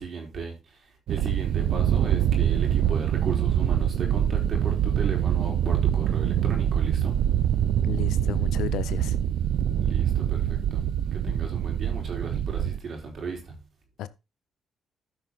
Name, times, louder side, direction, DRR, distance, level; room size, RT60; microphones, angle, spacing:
voice 1, 0.0-7.2 9.8-13.6, right 4 dB, 55° right, 4.9 m, -35 dB
sound 1, 1.1-12.8, right 10 dB, 75° right, 0.6 m, -24 dB
voice 2, 7.8-9.2 14.0-14.1, left 12 dB, 85° left, 0.7 m, -33 dB
13.5 x 5.9 x 4.0 m
cardioid pair, 90°, 0 cm